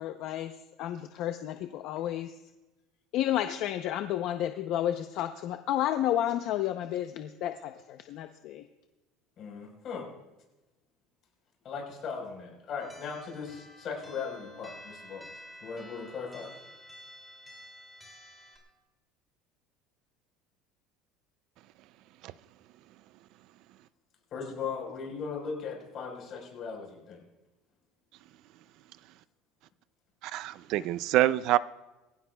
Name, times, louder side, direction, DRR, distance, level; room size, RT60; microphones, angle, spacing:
voice 1, 0.0-2.4 3.1-8.6, left 12 dB, 50° left, 0.6 m, -31 dB
voice 2, 9.4-10.1 11.6-15.2 15.6-16.5 24.3-27.2, left 5 dB, 35° left, 4.3 m, -38 dB
sound 1, 12.8-18.6, equal, ahead, 2.5 m, -50 dB
voice 3, 30.2-31.6, right 15 dB, 55° right, 0.4 m, -26 dB
23.5 x 15.5 x 2.3 m
cardioid pair, 160°, 0 cm